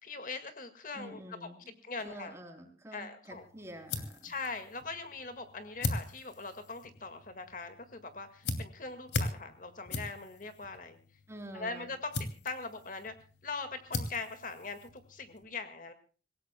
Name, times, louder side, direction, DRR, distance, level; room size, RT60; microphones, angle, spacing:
voice 1, 0.0-1.2 1.8-2.3 2.9-3.4 4.2-11.0 11.5-12.1 12.4-13.1 13.4-15.9, left 4 dB, 50° left, 9 dB, 1.9 m, -41 dB
voice 2, 0.9-4.3 11.3-11.9, right 1 dB, 15° right, 3 dB, 3.5 m, -48 dB
sound 1, 3.3-15.4, left 2 dB, 75° left, 2.6 m, -41 dB
26.5 x 17.0 x 2.2 m, 0.39 s
head